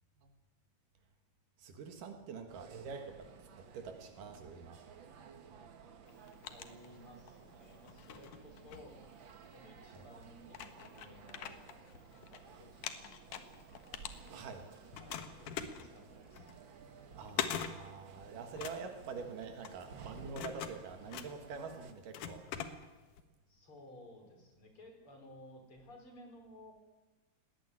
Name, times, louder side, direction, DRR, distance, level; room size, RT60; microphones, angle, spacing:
voice 1, 1.6-4.8 9.9-10.0 14.3-14.7 17.1-22.5, right 5 dB, 75° right, 6 dB, 3.2 m, -46 dB
sound 1, 2.5-21.9, right 6 dB, 50° right, 1.6 m, -56 dB
sound 2, 6.1-7.4 7.8-9.5 10.1-10.2 10.5-12.4 12.7-14.6 14.9-23.2, left 8 dB, 70° left, 2.8 m, -43 dB
voice 2, 6.4-9.0 9.5-11.7 12.3-13.4 15.0-16.5 23.5-26.8, left 1 dB, 40° left, 3 dB, 5.5 m, -56 dB
19.0 x 18.0 x 9.7 m, 1.2 s
omnidirectional pair, 3.8 m